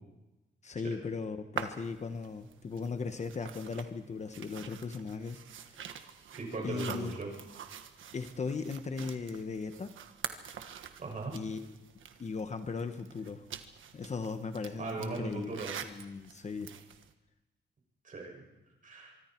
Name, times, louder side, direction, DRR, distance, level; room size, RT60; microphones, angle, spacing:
voice 1, 0.6-5.4 5.7-6.0 6.6-7.2 8.1-9.9 11.3-11.8 12.2-13.4 13.9-16.7, left 4 dB, 35° left, 8 dB, 1.1 m, -38 dB
sound 1, 1.6-17.1, right 8 dB, 85° right, 1.4 m, -46 dB
voice 2, 6.3-7.3 11.0-11.3 14.8-15.7 18.0-18.4 18.8-19.1, right 3 dB, 40° right, 0 dB, 6.8 m, -38 dB
24.5 x 24.5 x 4.6 m, 1.0 s
wide cardioid pair, 140°, 20 cm